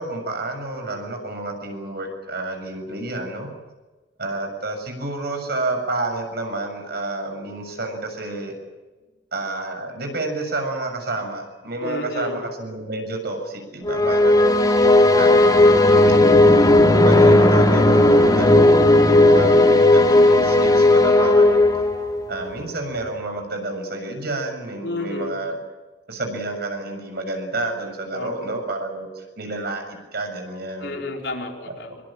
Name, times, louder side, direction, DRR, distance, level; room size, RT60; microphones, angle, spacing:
voice 1, 0.0-3.5 4.2-8.5 9.3-14.7 15.1-15.7 17.0-18.8 19.1-21.6 22.3-25.6 26.1-31.0, right 2 dB, 60° right, 4 dB, 7.2 m, -30 dB
voice 2, 11.8-12.4 15.0-16.2 24.8-25.4 28.1-28.5 30.8-32.0, left 2 dB, 80° left, 1 dB, 4.6 m, -32 dB
sound 1, 13.8-22.3, left 2 dB, 25° left, 4.1 m, -14 dB
25.5 x 23.5 x 7.5 m, 1.2 s
head